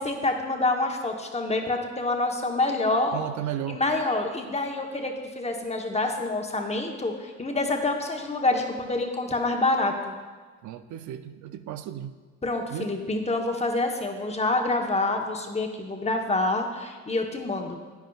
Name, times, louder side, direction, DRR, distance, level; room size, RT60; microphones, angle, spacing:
voice 1, 0.0-3.2 3.7-10.2 12.4-17.9, left 2 dB, 20° left, 3 dB, 1.0 m, -27 dB
voice 2, 3.1-3.8 10.6-12.1 12.7-12.9, right 11 dB, 75° right, 10 dB, 0.5 m, -34 dB
10.5 x 9.2 x 2.4 m, 1.4 s
cardioid pair, 90°, 30 cm